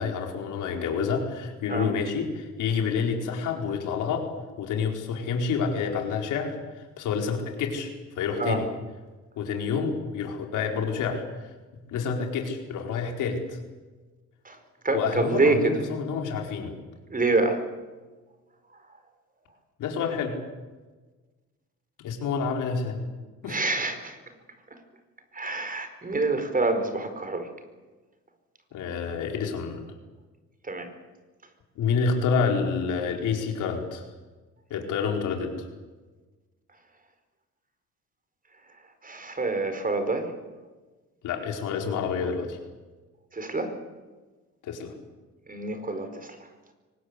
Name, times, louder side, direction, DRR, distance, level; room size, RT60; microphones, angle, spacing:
voice 1, 0.0-4.3 4.6-8.6 9.4-11.2 11.9-13.6 14.9-16.7 19.8-20.4 22.0-23.0 23.4-23.6 28.7-29.8 31.7-34.1 34.7-35.6 41.2-42.6 44.6-44.9, left 5 dB, 85° left, 2 dB, 4.6 m, -28 dB
voice 2, 14.8-15.8 17.1-17.6 23.5-24.2 25.3-27.5 30.6-30.9 39.0-40.3 43.3-43.7 45.5-46.4, right 3 dB, 30° right, 8 dB, 4.8 m, -26 dB
23.5 x 19.5 x 8.4 m, 1.3 s
cardioid pair, 90°, 30 cm